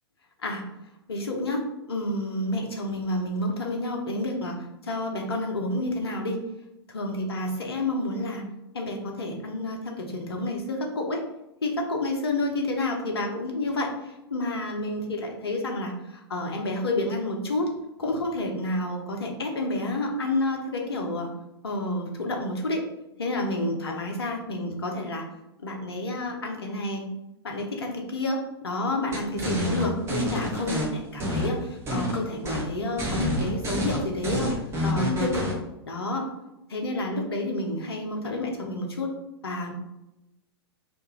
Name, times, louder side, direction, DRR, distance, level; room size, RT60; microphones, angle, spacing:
voice 1, 1.1-6.4 6.9-8.4 8.7-11.2 11.6-17.7 18.0-21.3 21.6-22.8 23.2-25.2 25.6-27.1 27.4-34.5 34.8-35.5 35.8-36.2 36.7-39.1 39.4-39.7, left 1 dB, 70° left, 2 dB, 0.7 m, -29 dB
sound 1, 29.1-30.8 31.2-32.2 32.4-32.7 33.0-35.5, left 1 dB, 20° right, 0.8 m, -28 dB
2.5 x 2.3 x 3.0 m, 0.92 s
figure-of-eight pair, 100°, 14 cm